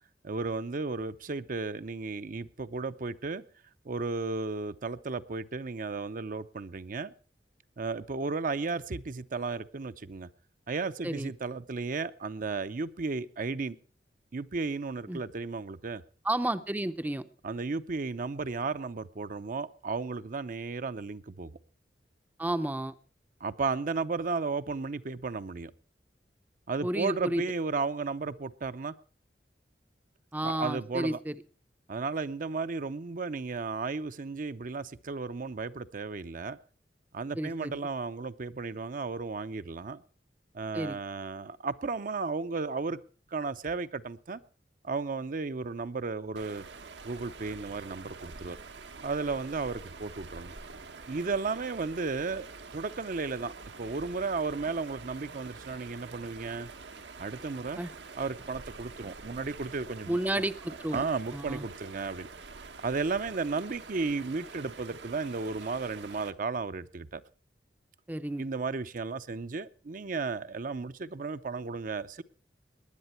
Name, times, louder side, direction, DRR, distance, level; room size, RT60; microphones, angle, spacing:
voice 1, 0.2-3.4 3.8-7.1 7.8-10.3 10.7-13.8 14.3-16.0 17.4-21.5 23.4-25.7 26.7-28.9 30.4-31.2 31.9-36.6 37.1-40.0 40.5-43.0 43.3-44.4 44.8-46.6 47.0-48.6 49.0-50.6 51.1-52.5 52.7-53.5 53.8-56.7 57.2-57.8 58.1-60.4 60.9-62.3 62.8-67.2 68.4-72.2, right 4 dB, 50° right, 11 dB, 0.6 m, -34 dB
voice 2, 16.2-17.3 22.4-22.9 26.8-27.4 30.3-31.3 37.4-37.8 40.7-41.0 57.8-57.9 60.1-61.0 61.3-61.6 68.1-68.5, right 1 dB, 10° right, 11 dB, 0.6 m, -31 dB
sound 1, 46.4-66.3, right 4 dB, 85° right, 1.3 m, -46 dB
19.0 x 10.5 x 4.3 m, 0.39 s
head